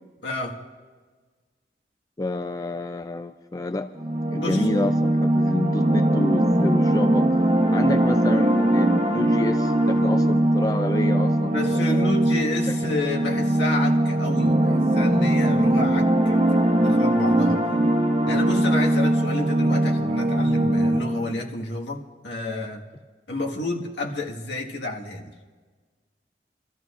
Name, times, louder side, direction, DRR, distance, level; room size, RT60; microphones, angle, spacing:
voice 1, 0.2-0.6 4.3-4.9 11.5-17.6 18.3-22.8 23.3-25.3, left 2 dB, 85° left, -1 dB, 1.6 m, -30 dB
voice 2, 2.2-3.9 4.2-7.3 7.7-12.1 12.7-13.0, left 2 dB, 20° left, 8 dB, 0.3 m, -29 dB
sound 1, 4.0-21.3, right 1 dB, 35° right, 0.9 m, -21 dB
26.0 x 13.5 x 2.5 m, 1.4 s
head